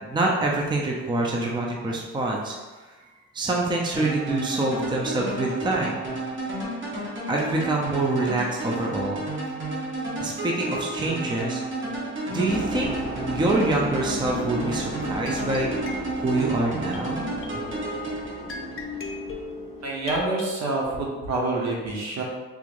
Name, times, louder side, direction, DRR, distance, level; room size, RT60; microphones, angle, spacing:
voice 1, 0.0-2.5 3.3-6.0 7.3-9.2 10.2-11.6 12.3-12.9 13.3-15.7 16.2-17.3, right 2 dB, 15° right, -2 dB, 0.5 m, -25 dB
sound 1, 3.9-19.0, right 2 dB, 40° right, 1.0 m, -32 dB
sound 2, 12.5-20.1, equal, 20° left, 0.9 m, -36 dB
sound 3, 15.3-20.5, left 2 dB, 45° left, 0.6 m, -37 dB
voice 2, 19.8-22.2, right 2 dB, 65° right, -2 dB, 0.9 m, -27 dB
3.7 x 3.0 x 2.5 m, 1.3 s
cardioid pair, 90°, 30 cm